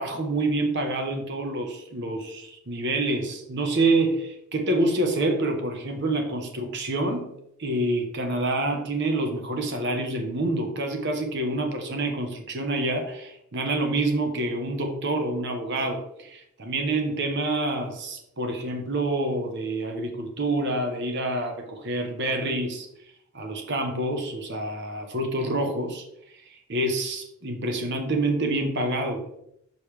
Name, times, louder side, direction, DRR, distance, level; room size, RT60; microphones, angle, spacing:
voice 1, 0.0-7.3 7.6-22.9 23.3-26.0 26.7-29.2, right 2 dB, 55° right, 4 dB, 1.1 m, -27 dB
6.3 x 5.4 x 3.4 m, 0.77 s
head